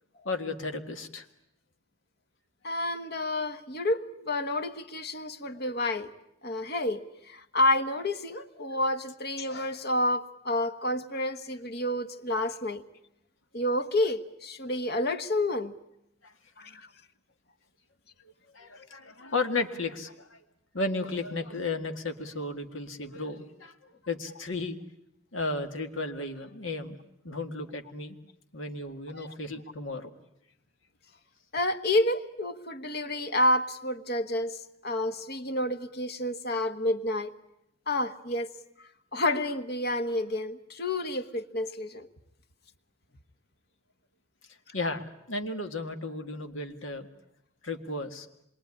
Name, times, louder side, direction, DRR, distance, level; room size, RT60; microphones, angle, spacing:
voice 1, 0.3-1.3 16.2-16.3 18.2-20.4 20.7-24.8 25.3-27.0 27.2-28.2 28.5-30.1 44.7-47.1 47.6-48.3, left 3 dB, 80° left, 2.0 m, -34 dB
voice 2, 2.6-6.1 6.4-12.8 13.5-15.7 16.6-16.9 29.1-29.4 31.5-37.3 37.9-38.5 38.8-42.1, left 1 dB, 50° left, 1.3 m, -29 dB
27.0 x 22.5 x 9.8 m
head